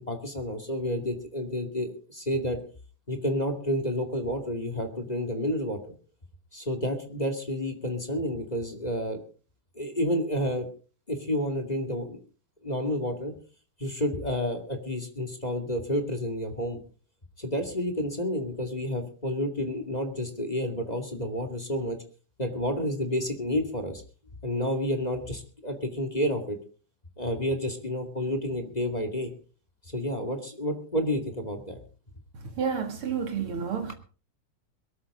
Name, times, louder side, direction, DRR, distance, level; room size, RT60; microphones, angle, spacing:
voice 1, 0.0-2.6 3.1-5.9 6.5-9.2 9.8-10.7 11.1-12.2 12.6-13.3 13.8-16.8 17.4-22.0 22.4-24.0 24.4-26.6 27.2-29.3 29.9-31.8, equal, 15° left, 1.9 m, -30 dB
voice 2, 32.6-33.9, right 6 dB, 45° right, 3.1 m, -30 dB
22.0 x 13.5 x 3.8 m
omnidirectional pair, 3.6 m